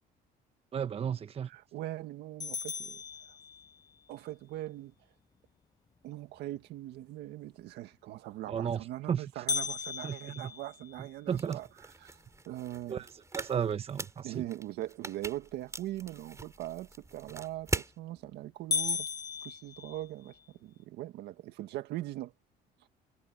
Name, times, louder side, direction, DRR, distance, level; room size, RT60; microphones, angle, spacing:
voice 1, 0.7-1.5 8.5-9.2 10.0-10.5 11.3-11.6 12.9-13.1 13.3-14.4, right 8 dB, 35° right, 1.0 m, -33 dB
voice 2, 1.5-3.0 4.1-4.9 6.0-12.2 12.5-13.0 14.2-19.1 19.4-22.3, right 15 dB, 85° right, 1.9 m, -41 dB
sound 1, 2.4-4.0 9.5-11.6 12.1-12.2 12.7-12.8 13.5-13.8 17.4-17.8 18.2-18.3 18.7-20.4, left 5 dB, 20° left, 0.5 m, -36 dB
sound 2, 11.3-18.0, right 3 dB, 15° right, 4.3 m, -41 dB
cardioid pair, 110°, 17 cm